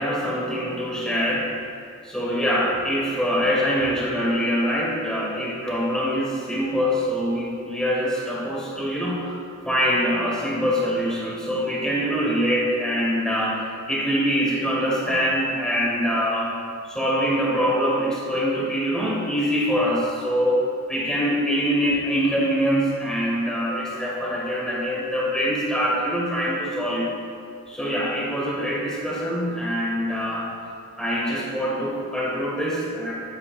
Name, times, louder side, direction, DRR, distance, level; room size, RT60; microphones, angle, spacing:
voice 1, 0.0-1.5 2.0-9.4 9.6-16.5 16.8-27.1 27.7-30.5 31.0-33.1, equal, 5° left, -5 dB, 1.8 m, -24 dB
11.0 x 8.0 x 2.5 m, 2.4 s
head